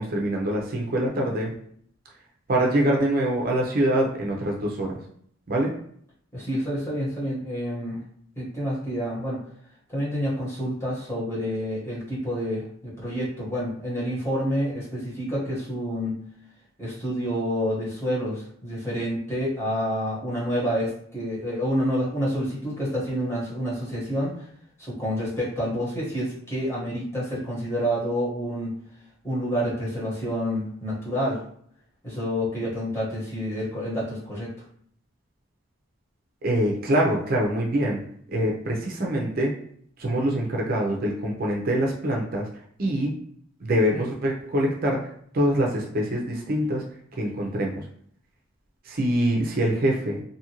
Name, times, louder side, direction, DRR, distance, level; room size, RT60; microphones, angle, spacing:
voice 1, 0.0-1.5 2.5-5.0 5.5-5.7 36.4-38.0 38.3-39.6 40.0-42.5 42.8-43.1 43.6-46.9 47.2-47.8 48.9-50.2, right 1 dB, 45° right, -1 dB, 0.5 m, -24 dB
voice 2, 6.3-8.0 8.4-9.4 9.9-16.2 16.8-24.5 24.8-28.7 29.2-31.4 32.0-34.5, equal, 15° left, -8 dB, 1.2 m, -28 dB
2.7 x 2.5 x 2.9 m, 0.64 s
head